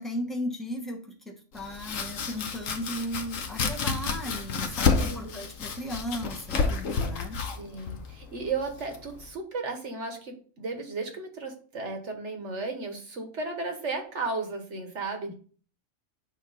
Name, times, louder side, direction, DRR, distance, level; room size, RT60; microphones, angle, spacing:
voice 1, 0.0-7.4 15.3-15.4, left 1 dB, ahead, 1 dB, 1.0 m, -36 dB
Domestic sounds home sounds, 1.5-9.3, left 5 dB, 75° left, 1.3 m, -30 dB
voice 2, 4.8-5.4 7.6-15.3, right 3 dB, 60° right, 4 dB, 1.6 m, -34 dB
8.9 x 3.0 x 5.4 m, 0.42 s
omnidirectional pair, 1.4 m